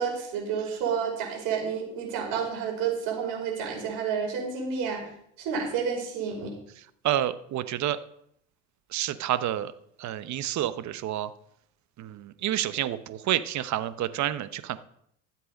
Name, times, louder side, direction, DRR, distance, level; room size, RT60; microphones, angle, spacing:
voice 1, 0.0-5.0 5.4-6.5, right 6 dB, 70° right, 0 dB, 5.2 m, -30 dB
voice 2, 6.8-8.0 8.9-9.7 10.0-11.3 12.0-14.8, right 12 dB, 50° right, 13 dB, 1.0 m, -29 dB
13.5 x 7.8 x 5.3 m, 0.70 s
supercardioid pair, 85°, 36 cm